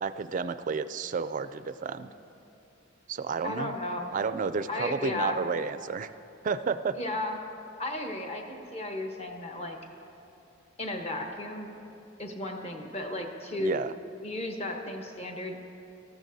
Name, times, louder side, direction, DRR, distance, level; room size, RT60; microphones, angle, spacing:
voice 1, 0.0-2.1 3.1-3.7 4.1-6.1 6.4-7.0 13.6-13.9, right 5 dB, 40° right, 12 dB, 0.3 m, -31 dB
voice 2, 3.4-4.1 4.7-5.4 7.0-7.4 7.8-9.8 10.8-11.7 12.2-13.8 14.2-15.6, left 1 dB, 30° left, 2 dB, 1.1 m, -34 dB
19.0 x 14.0 x 2.7 m, 2.8 s
head